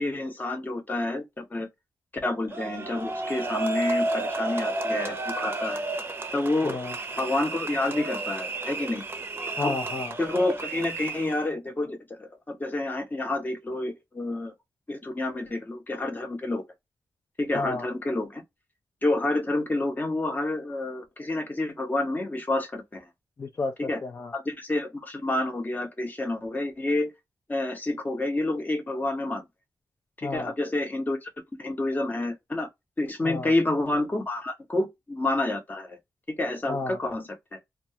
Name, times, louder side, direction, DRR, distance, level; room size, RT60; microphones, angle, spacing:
voice 1, 0.0-1.7 2.2-5.8 6.3-6.8 7.2-9.0 9.6-9.8 10.2-14.5 14.9-16.6 17.4-18.4 19.0-23.0 23.9-24.0 24.3-27.1 27.5-29.5 30.2-31.3 31.6-32.7 33.0-36.0 36.3-37.6, left 2 dB, 25° left, 0.8 m, -29 dB
sound 1, 2.5-11.4, right 2 dB, 30° right, 0.6 m, -32 dB
voice 2, 6.6-6.9 9.6-10.1 17.5-17.9 23.4-23.7 24.0-24.3 30.2-30.5 33.2-33.5 36.7-37.0, left 3 dB, 40° left, 0.4 m, -31 dB
2.3 x 2.2 x 2.7 m
wide cardioid pair, 105°, 7 cm